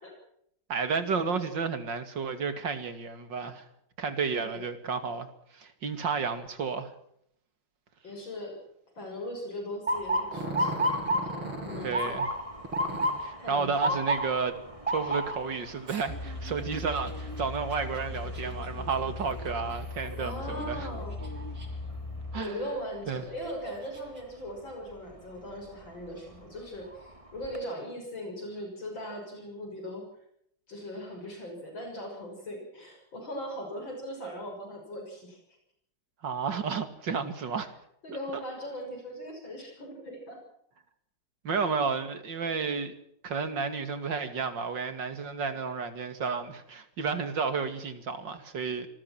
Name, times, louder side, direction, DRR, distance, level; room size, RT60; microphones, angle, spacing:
voice 1, 0.7-3.6 4.0-5.3 5.5-6.9 11.8-12.3 13.2-14.6 14.9-20.9 22.3-22.6 23.1-23.2 36.2-37.7 38.1-38.2 41.4-42.9 43.2-48.9, right 5 dB, 60° right, 3.0 m, -32 dB
voice 2, 4.3-4.7 8.0-8.6 9.0-12.3 13.4-14.0 20.2-21.2 22.3-30.1 30.7-35.4 38.0-40.4, equal, 65° left, 7.3 m, -39 dB
Motor vehicle (road) / Siren, 9.9-21.8 22.2-22.7 23.4-23.7 25.6-25.9 26.4-26.5 26.9-27.6, right 1 dB, 15° right, 2.7 m, -33 dB
Growling, 10.3-12.0 12.6-13.2 15.9-20.6 21.1-21.9 22.4-22.5 23.2-24.2, right 1 dB, 85° right, 7.4 m, -41 dB
sound 1, 16.1-22.4, left 2 dB, 10° left, 1.9 m, -38 dB
26.5 x 20.5 x 6.1 m
omnidirectional pair, 2.2 m